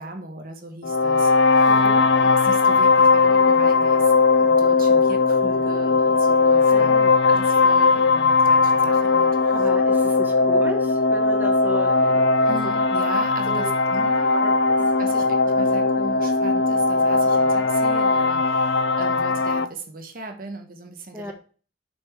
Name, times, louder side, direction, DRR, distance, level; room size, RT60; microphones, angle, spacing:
voice 1, 0.0-1.7 2.0-6.9 7.3-9.6 12.4-14.4 15.0-21.3, right 2 dB, 50° right, 6 dB, 1.2 m, -37 dB
sound 1, 0.8-19.7, left 4 dB, 80° left, 0.5 m, -19 dB
voice 2, 1.7-2.0 6.7-7.1 9.5-12.8 13.5-13.7 14.3-14.8 15.1-15.3 21.1-21.3, right 1 dB, 10° right, 3 dB, 1.0 m, -34 dB
7.7 x 5.6 x 3.5 m, 0.39 s
head